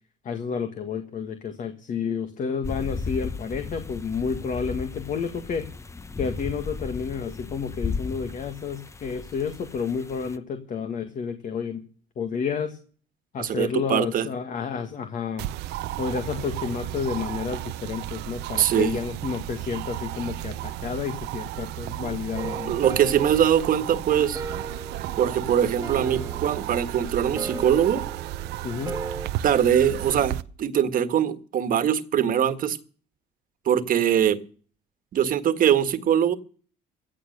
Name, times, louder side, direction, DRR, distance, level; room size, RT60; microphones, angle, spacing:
voice 1, 0.2-5.7 6.2-11.8 12.2-12.8 13.3-15.5 16.0-22.8 28.6-29.0, left 6 dB, 50° left, 1.8 m, -30 dB
sound 1, 2.6-10.4, left 4 dB, 15° left, 0.9 m, -35 dB
voice 2, 13.4-14.3 18.5-19.0 22.7-24.4 25.2-28.0 29.4-32.8 33.6-34.4 35.1-36.3, right 9 dB, 55° right, 1.6 m, -22 dB
sound 2, 15.4-30.4, right 14 dB, 90° right, 0.8 m, -34 dB
sound 3, 22.3-29.3, right 3 dB, 15° right, 1.6 m, -38 dB
16.0 x 8.9 x 6.5 m
cardioid pair, 110°, 17 cm